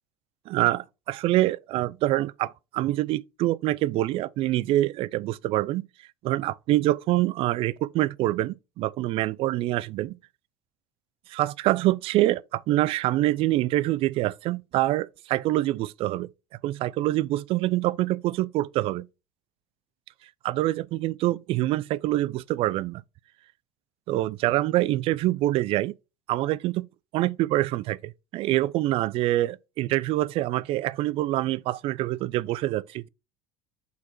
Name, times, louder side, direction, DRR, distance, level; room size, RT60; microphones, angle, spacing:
voice 1, 0.5-5.8 6.2-10.2 11.3-16.3 16.6-19.1 20.4-23.0 24.1-25.9 26.3-26.8 27.1-33.1, right 16 dB, 55° right, 0.5 m, -25 dB
6.4 x 4.1 x 4.5 m
supercardioid pair, 90°, 12 cm